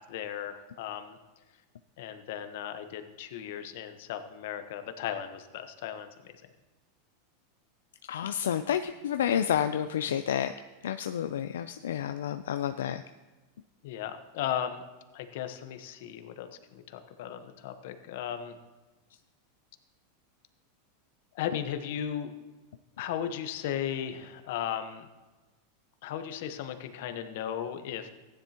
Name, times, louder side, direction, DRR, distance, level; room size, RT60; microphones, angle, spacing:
voice 1, 0.1-1.2 2.0-6.3 13.8-14.8 15.1-18.6 21.3-22.3 23.0-25.1 26.0-28.1, left 10 dB, 70° left, 8 dB, 1.1 m, -36 dB
voice 2, 8.1-10.5 10.8-13.0, left 9 dB, 90° left, 9 dB, 0.4 m, -30 dB
15.5 x 10.0 x 2.9 m, 1.2 s
supercardioid pair, 130°, 0 cm